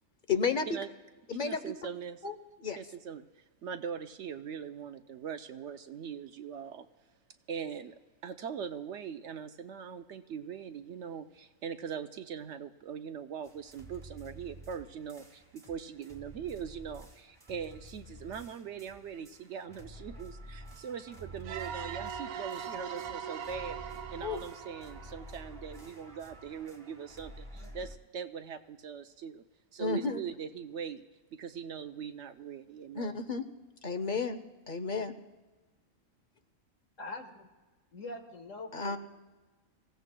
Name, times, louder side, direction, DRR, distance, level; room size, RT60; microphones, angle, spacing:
voice 1, 0.3-0.7 1.3-1.6 2.2-2.3 2.6-2.8 24.2-24.4 29.8-30.2 32.9-33.4 33.8-34.4 34.7-35.1 38.7-39.0, left 5 dB, 45° left, 9 dB, 0.8 m, -31 dB
voice 2, 1.3-2.3 2.8-3.3 3.6-6.9 7.5-7.9 8.2-23.8 24.1-29.4 29.7-31.0 31.3-33.1, right 7 dB, 65° right, 9 dB, 0.9 m, -41 dB
sound 1, 13.4-28.0, right 2 dB, 25° right, 1.4 m, -50 dB
sound 2, 21.4-26.0, right 7 dB, 85° right, 1.1 m, -41 dB
voice 3, 37.0-37.5 37.9-39.0, left 2 dB, 70° left, 4 dB, 1.9 m, -43 dB
26.5 x 16.0 x 2.2 m, 1.3 s
omnidirectional pair, 1.4 m